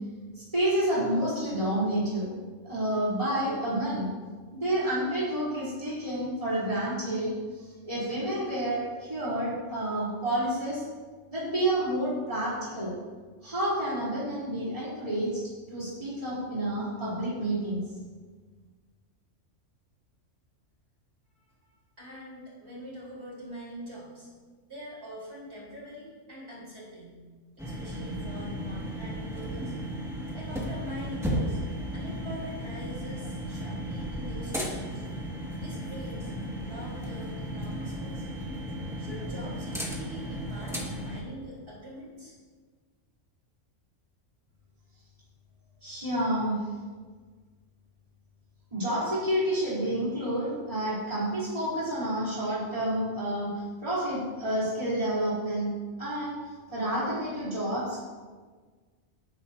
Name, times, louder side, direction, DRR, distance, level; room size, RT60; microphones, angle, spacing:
voice 1, 0.4-2.3 2.6-4.1 4.5-10.8 11.3-12.9 13.4-15.4 15.7-17.8 45.8-46.7 48.7-55.7 56.0-58.0, right 1 dB, 25° right, -10 dB, 3.9 m, -29 dB
voice 2, 22.0-24.3 24.7-27.2 27.6-29.7 30.3-31.6 31.9-35.0 35.6-36.3 36.6-38.3 39.0-42.3, right 1 dB, 55° right, -7 dB, 4.7 m, -44 dB
sound 1, 27.6-41.2, equal, ahead, 2.1 m, -35 dB
19.0 x 9.4 x 2.9 m, 1.5 s
omnidirectional pair, 1.3 m